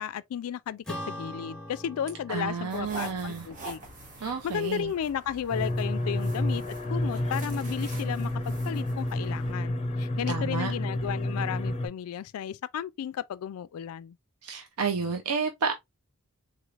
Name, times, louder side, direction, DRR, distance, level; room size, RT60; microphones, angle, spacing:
voice 1, 0.0-3.8 4.2-14.2, left 8 dB, 65° left, 0.3 m, -34 dB
Acoustic guitar / Strum, 0.9-5.6, left 1 dB, 5° left, 1.3 m, -43 dB
voice 2, 2.3-3.5 4.2-4.9 10.3-10.7 14.4-15.7, right 5 dB, 80° right, 0.5 m, -31 dB
sound 1, 2.7-9.5, right 2 dB, 35° right, 1.2 m, -45 dB
sound 2, 5.5-11.9, left 1 dB, 25° left, 0.7 m, -30 dB
3.8 x 3.2 x 2.4 m
head